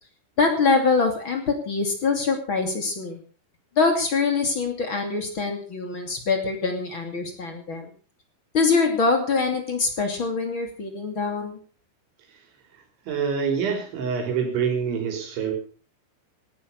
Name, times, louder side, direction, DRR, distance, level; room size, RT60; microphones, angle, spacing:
voice 1, 0.4-3.2 3.8-7.9 8.5-11.6, left 4 dB, 35° left, 4 dB, 2.5 m, -24 dB
voice 2, 13.1-15.5, right 6 dB, 75° right, 4 dB, 6.2 m, -26 dB
18.5 x 12.0 x 5.4 m, 0.40 s
omnidirectional pair, 5.5 m